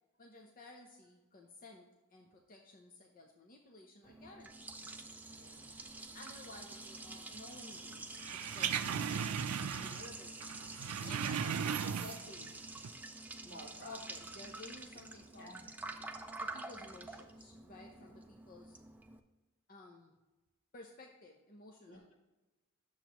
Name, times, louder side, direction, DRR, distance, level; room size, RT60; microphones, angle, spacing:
voice 1, 0.2-4.7 6.1-9.3 9.8-10.4 11.0-12.6 13.8-15.5 16.4-18.8 19.7-20.1 20.7-22.0, left 2 dB, 40° left, 1 dB, 0.7 m, -54 dB
Liquid, 4.0-19.2, right 2 dB, 5° right, 0.4 m, -48 dB
voice 2, 5.3-5.7 13.4-14.0 15.4-15.7 17.9-18.1 21.9-22.1, right 1 dB, 75° left, -5 dB, 2.6 m, -54 dB
sound 1, 8.2-10.1 10.4-12.4 12.8-12.9, right 7 dB, 75° right, 0.4 m, -37 dB
10.0 x 7.2 x 3.0 m, 1.1 s
head